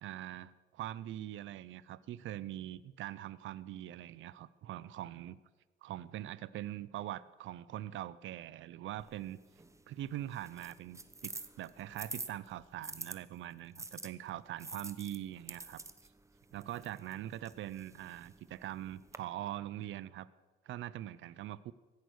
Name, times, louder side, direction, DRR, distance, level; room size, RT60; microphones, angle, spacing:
voice 1, 0.0-5.4 5.8-9.4 9.9-15.8 16.5-20.3 20.6-21.7, right 13 dB, 75° right, 18 dB, 0.6 m, -43 dB
sound 1, 9.0-13.2 13.8-19.2, right 2 dB, 15° right, 1.0 m, -48 dB
16.0 x 11.0 x 6.4 m, 1.3 s
cardioid pair, 90°, 20 cm